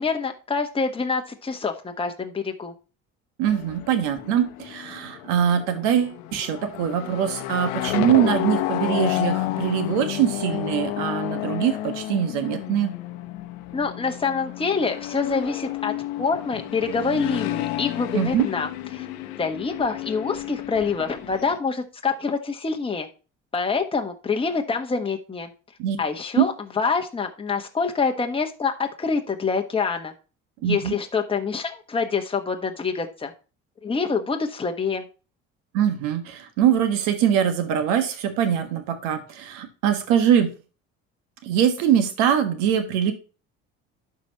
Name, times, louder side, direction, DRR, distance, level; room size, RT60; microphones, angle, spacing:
voice 1, 0.0-2.7 13.7-15.9 16.2-19.1 19.4-23.1 23.5-25.5 26.0-30.1 30.6-33.3 33.8-35.0, left 5 dB, 20° left, 3 dB, 1.2 m, -26 dB
sound 1, 3.4-21.6, left 14 dB, 90° left, 0.8 m, -31 dB
voice 2, 3.4-12.9 18.1-18.5 25.8-26.0 26.4-26.5 30.6-31.0 35.7-40.5 41.4-43.1, right 9 dB, 90° right, 7 dB, 1.5 m, -22 dB
11.5 x 4.8 x 2.9 m, 0.33 s
supercardioid pair, 85°, 29 cm